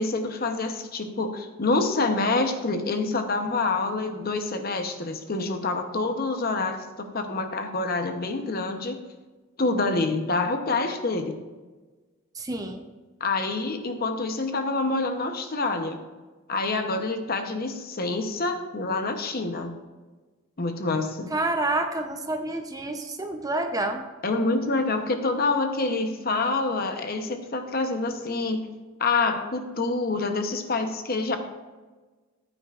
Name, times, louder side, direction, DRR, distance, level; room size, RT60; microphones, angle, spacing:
voice 1, 0.0-6.9 7.1-9.0 9.6-11.4 13.2-16.0 16.5-19.7 20.6-21.3 24.2-28.7 29.0-31.4, left 3 dB, 45° left, 6 dB, 0.9 m, -27 dB
voice 2, 12.4-12.9 21.3-24.1, right 2 dB, 15° right, 5 dB, 0.7 m, -28 dB
14.5 x 8.9 x 2.5 m, 1.3 s
head